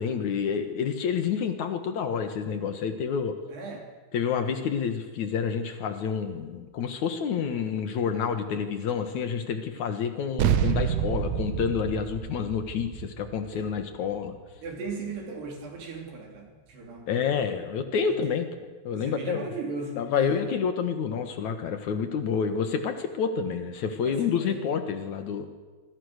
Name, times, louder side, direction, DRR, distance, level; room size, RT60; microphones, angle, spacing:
voice 1, 0.0-3.4 4.1-14.3 17.1-18.5 18.8-19.5 20.0-25.5, left 6 dB, 70° left, 7 dB, 1.8 m, -28 dB
voice 2, 3.5-3.9 13.5-13.7 14.6-17.1 18.0-18.3 18.9-20.5 24.0-24.7, right 3 dB, 55° right, 1 dB, 5.6 m, -37 dB
sound 1, 10.4-15.2, right 10 dB, 85° right, 3.7 m, -29 dB
25.5 x 25.0 x 6.6 m, 1.3 s
omnidirectional pair, 5.7 m